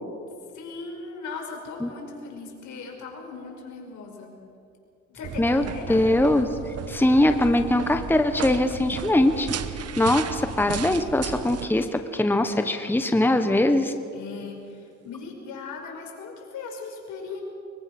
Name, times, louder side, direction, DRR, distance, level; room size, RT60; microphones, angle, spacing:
voice 1, 0.5-4.4 5.1-6.1 14.1-17.4, left 4 dB, 75° left, 1 dB, 5.3 m, -38 dB
sound 1, 5.2-11.7, right 8 dB, 55° right, 1.2 m, -34 dB
voice 2, 5.4-9.5 10.0-13.9, left 1 dB, 5° left, 7 dB, 1.2 m, -22 dB
23.0 x 22.5 x 6.1 m, 2.5 s
cardioid pair, 90°, 30 cm